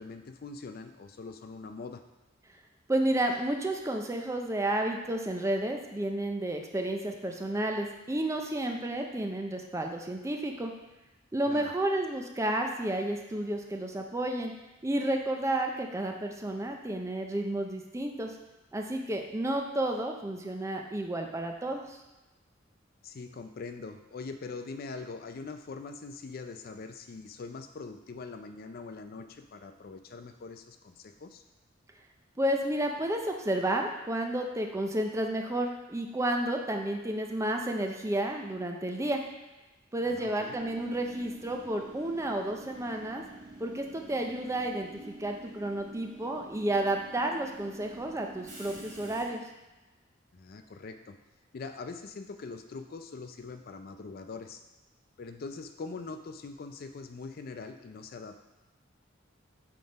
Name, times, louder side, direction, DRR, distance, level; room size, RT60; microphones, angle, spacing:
voice 1, 0.0-2.0 11.5-11.7 23.0-31.4 40.0-40.5 50.3-51.2 51.5-54.6 55.2-58.4, left 4 dB, 50° left, 7 dB, 0.4 m, -42 dB
voice 2, 2.9-10.7 11.3-14.5 14.8-18.3 18.7-22.0 32.4-39.2 39.9-43.2 43.6-49.4, right 1 dB, 15° right, 2 dB, 0.5 m, -31 dB
Train / Subway metro underground, 40.5-49.2, right 2 dB, 40° right, 1.4 m, -48 dB
5.9 x 3.5 x 5.2 m, 1.1 s
head